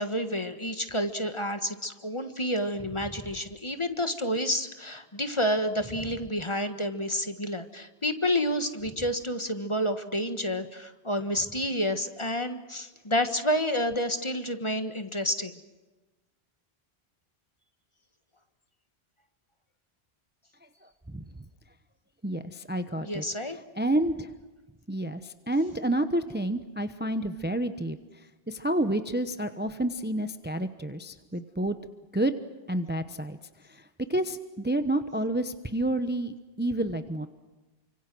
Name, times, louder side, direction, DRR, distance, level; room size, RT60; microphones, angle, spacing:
voice 1, 0.0-15.5 22.9-23.6, equal, 25° left, 8 dB, 1.5 m, -29 dB
voice 2, 22.2-24.3 24.9-31.8 32.1-32.3 32.7-33.4 33.7-37.3, right 1 dB, 10° right, 9 dB, 0.9 m, -29 dB
29.0 x 25.5 x 6.2 m, 1.2 s
omnidirectional pair, 1.1 m